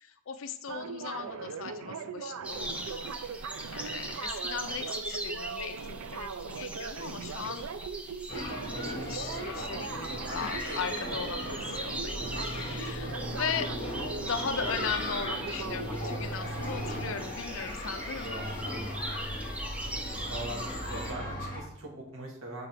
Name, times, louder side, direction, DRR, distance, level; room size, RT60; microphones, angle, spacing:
voice 1, 0.0-7.6 8.3-13.7 14.2-18.3, left 6 dB, 70° left, 11 dB, 0.4 m, -38 dB
sound 1, 0.7-17.3, right 6 dB, 90° right, 0.4 m, -40 dB
sound 2, 2.4-21.1, right 1 dB, 5° right, 0.4 m, -40 dB
sound 3, 8.3-21.6, left 1 dB, 40° left, 1.9 m, -37 dB
voice 2, 18.2-18.6 20.3-22.7, right 1 dB, 70° right, -1 dB, 1.8 m, -42 dB
8.6 x 3.7 x 3.4 m, 0.84 s
head